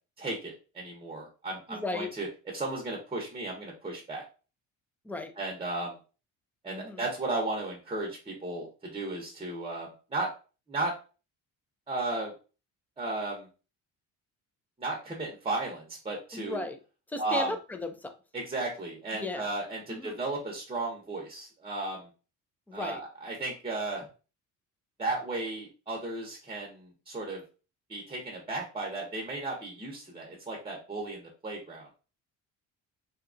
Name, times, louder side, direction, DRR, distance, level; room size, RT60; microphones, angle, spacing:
voice 1, 0.2-2.3 2.5-4.3 5.4-5.9 6.6-8.7 8.9-10.3 10.7-10.9 11.9-12.3 13.0-13.5 14.8-16.6 17.2-17.5 18.3-22.1 22.7-24.1 25.0-27.4 27.9-31.9, right 2 dB, 15° right, -1 dB, 0.7 m, -34 dB
voice 2, 1.7-2.1 5.0-5.3 6.7-7.1 16.3-16.8 17.1-18.1 19.1-19.5 19.9-20.2 22.7-23.0, left 2 dB, 5° left, 6 dB, 0.3 m, -35 dB
2.8 x 2.3 x 2.5 m, 0.34 s
cardioid pair, 100°, 33 cm